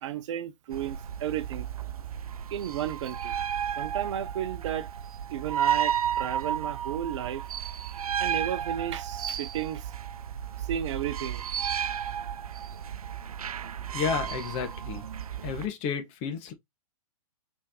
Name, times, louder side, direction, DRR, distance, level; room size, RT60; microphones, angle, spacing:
voice 1, 0.0-1.7 2.5-3.4 3.8-4.9 5.3-7.4 8.2-9.9 10.6-11.4, right 10 dB, 55° right, 0.7 m, -33 dB
sound 1, 0.7-15.7, right 9 dB, 85° right, 0.4 m, -33 dB
voice 2, 13.9-15.0 15.4-16.5, left 7 dB, 35° left, 1.3 m, -31 dB
4.4 x 3.5 x 2.9 m
hypercardioid pair, 120°, 18 cm